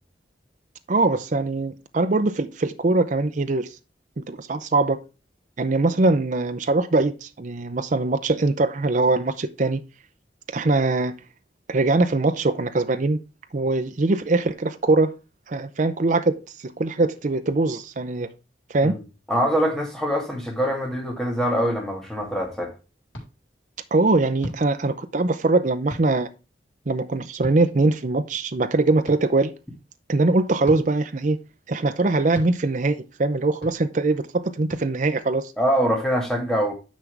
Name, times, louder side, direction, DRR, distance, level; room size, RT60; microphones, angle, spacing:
voice 1, 0.9-3.7 4.2-5.0 5.6-9.8 10.5-11.1 11.7-13.2 13.5-15.1 15.5-16.3 16.6-18.3 18.7-18.9 23.9-26.3 26.9-29.5 30.1-31.4 31.7-35.5, right 2 dB, 45° right, 0.6 m, -22 dB
voice 2, 19.3-22.7 35.6-36.7, equal, 5° left, 2.2 m, -24 dB
sound 1, 23.1-23.3 24.4-24.6 25.9-26.1 27.4-27.6 29.1-29.2 30.6-30.8 32.3-32.5 33.6-33.8 34.7-34.8, equal, 85° left, 3.8 m, -35 dB
10.0 x 6.0 x 3.4 m
head